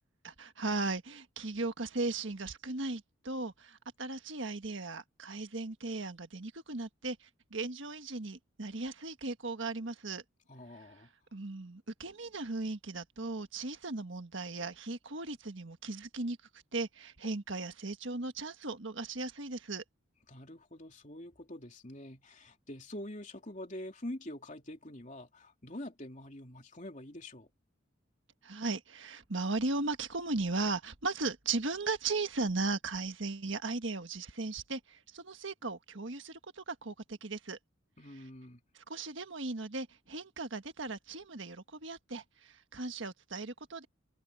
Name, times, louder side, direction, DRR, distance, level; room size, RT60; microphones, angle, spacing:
voice 1, 0.2-10.2 11.3-16.4 16.7-19.8 28.4-37.6 38.9-43.9, right 3 dB, 65° right, 1.5 m, -37 dB
voice 2, 10.5-11.1 20.3-27.5 38.0-38.6, left 1 dB, 35° left, 3.0 m, -45 dB
head